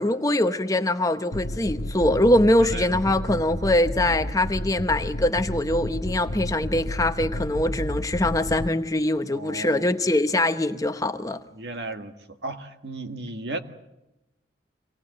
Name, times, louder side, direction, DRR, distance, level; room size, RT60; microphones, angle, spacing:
voice 1, 0.0-11.4, left 1 dB, 20° left, 0.8 m, -23 dB
sound 1, 1.3-8.7, left 1 dB, 75° left, 1.5 m, -32 dB
voice 2, 2.7-3.3 9.3-9.9 11.5-13.6, right 2 dB, 60° right, 1.8 m, -35 dB
25.5 x 18.5 x 7.9 m
head